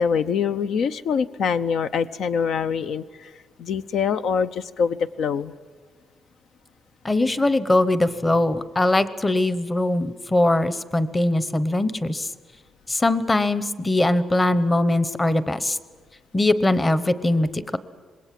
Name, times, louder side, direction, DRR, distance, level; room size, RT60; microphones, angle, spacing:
voice 1, 0.0-3.3 3.6-5.5, left 6 dB, 70° left, 11 dB, 0.7 m, -24 dB
voice 2, 7.0-12.3 12.9-15.8 16.3-17.8, left 2 dB, 15° left, 14 dB, 0.9 m, -21 dB
26.5 x 21.0 x 7.6 m, 1.5 s
cardioid pair, 160°, 0 cm